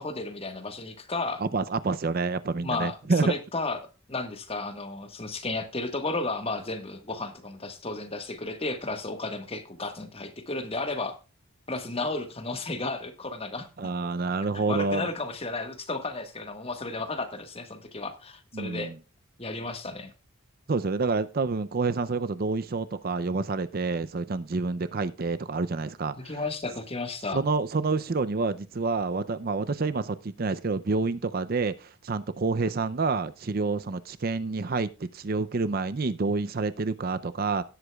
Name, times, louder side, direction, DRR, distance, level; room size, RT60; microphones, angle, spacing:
voice 1, 0.0-1.4 2.6-3.0 3.2-3.8 4.1-11.2 11.7-13.7 14.5-18.9 19.4-20.1 26.2-27.4, left 3 dB, 25° left, 7 dB, 1.5 m, -33 dB
voice 2, 1.4-3.3 13.8-15.1 18.5-19.0 20.7-26.3 27.3-37.6, right 3 dB, 45° right, 13 dB, 0.5 m, -28 dB
17.0 x 8.1 x 2.3 m, 0.32 s
head